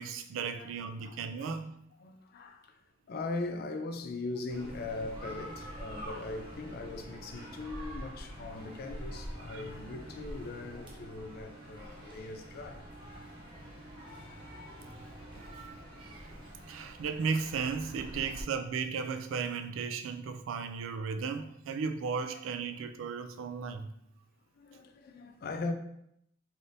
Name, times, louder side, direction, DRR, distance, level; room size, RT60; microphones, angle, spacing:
voice 1, 0.0-1.7 9.5-9.6 15.4-15.5 16.0-16.2 16.7-23.9, right 5 dB, 85° right, 0.3 m, -35 dB
voice 2, 1.0-1.5 2.0-2.8 3.1-12.8 18.2-18.5 24.6-25.7, left 3 dB, 50° left, 0.3 m, -40 dB
sound 1, 4.5-18.4, equal, 25° right, 0.6 m, -45 dB
3.3 x 2.6 x 2.6 m
head